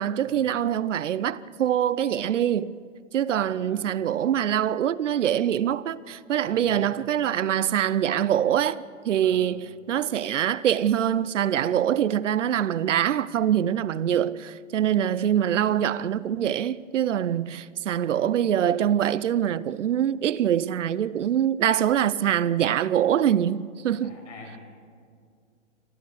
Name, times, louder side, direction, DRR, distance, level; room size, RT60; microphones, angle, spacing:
voice 1, 0.0-2.7 3.1-24.1, right 10 dB, 70° right, 0.8 m, -24 dB
voice 2, 3.5-4.0 6.4-6.8 9.2-9.4 24.0-24.6, left 3 dB, 70° left, 7.7 m, -46 dB
27.5 x 14.0 x 8.0 m
hypercardioid pair, 140°, 38 cm